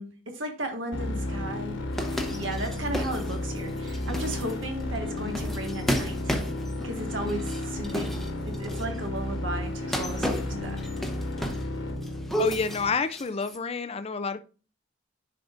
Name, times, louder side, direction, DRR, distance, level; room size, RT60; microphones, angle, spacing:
voice 1, 0.0-1.8 2.3-6.2 6.8-10.8, right 1 dB, 75° right, 1.6 m, -35 dB
sound 1, 0.9-12.9, left 1 dB, 70° left, 1.4 m, -33 dB
sound 2, 1.9-9.0 9.8-11.8 12.0-13.6, equal, ahead, 0.9 m, -33 dB
voice 2, 12.4-14.4, left 4 dB, 30° left, 0.4 m, -29 dB
10.5 x 4.7 x 2.5 m
head